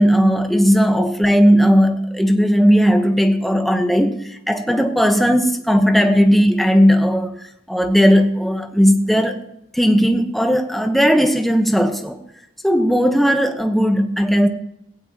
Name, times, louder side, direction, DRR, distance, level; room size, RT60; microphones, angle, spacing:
voice 1, 0.0-9.4 9.7-12.2 12.6-14.5, equal, ahead, 1.1 m, -16 dB
16.5 x 16.5 x 3.0 m
head